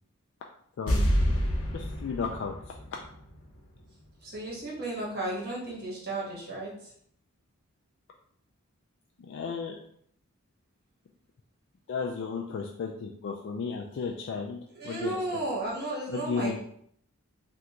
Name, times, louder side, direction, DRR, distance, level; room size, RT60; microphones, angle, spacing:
voice 1, 0.8-1.1 1.7-2.7 9.2-9.8 11.9-15.1 16.1-16.6, left 5 dB, 55° left, 0 dB, 0.3 m, -34 dB
sound 1, 0.9-4.1 4.3-4.4, equal, 90° left, 0.8 m, -29 dB
voice 2, 4.2-6.9 14.7-16.6, right 2 dB, 50° right, -5 dB, 1.1 m, -34 dB
3.4 x 2.5 x 2.9 m, 0.66 s
head